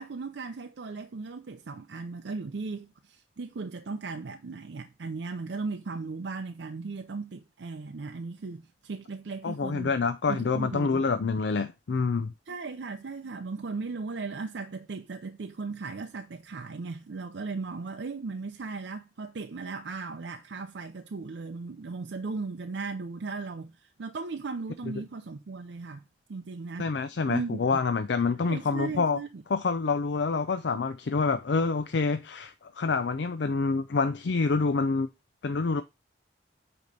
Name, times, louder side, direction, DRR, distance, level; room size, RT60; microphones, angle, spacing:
voice 1, 0.0-9.9 10.3-11.1 12.5-26.0 26.3-26.9 27.3-27.8 28.4-29.4, right 4 dB, 75° right, 0.5 m, -37 dB
voice 2, 9.4-12.3 26.8-29.2 29.5-35.1 35.4-35.8, left 4 dB, 70° left, 0.4 m, -27 dB
8.2 x 3.0 x 5.2 m
head